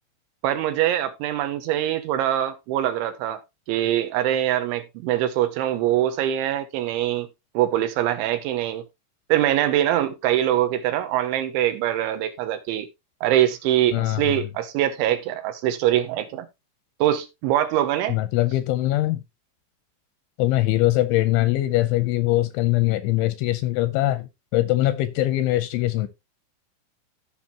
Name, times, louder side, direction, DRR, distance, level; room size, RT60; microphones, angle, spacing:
voice 1, 0.4-3.4 3.7-7.3 7.5-8.9 9.3-12.9 13.2-16.5 17.0-18.2, right 12 dB, 80° right, 2.9 m, -23 dB
voice 2, 13.9-14.2 18.1-19.2 20.4-26.1, left 16 dB, 85° left, 2.7 m, -22 dB
15.5 x 5.7 x 2.8 m
omnidirectional pair, 5.8 m